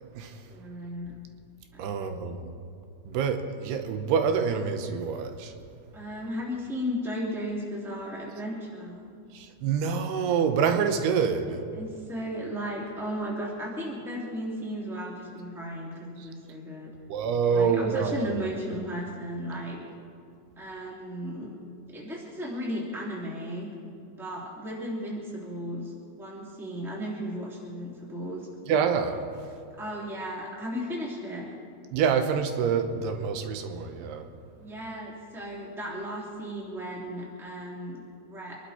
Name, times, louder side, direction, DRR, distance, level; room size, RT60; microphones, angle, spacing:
voice 1, 0.5-1.2 1.7-2.3 5.9-9.1 11.3-11.4 11.7-16.9 17.5-19.8 20.6-21.5 21.9-23.7 24.2-28.5 29.8-31.5 34.6-38.6, equal, ahead, -3 dB, 1.9 m, -35 dB
voice 2, 1.8-2.4 3.1-5.5 9.4-11.6 17.1-18.3 28.7-29.2 31.9-34.2, right 6 dB, 85° right, 7 dB, 3.1 m, -26 dB
25.0 x 11.5 x 4.3 m, 2.4 s
omnidirectional pair, 4.6 m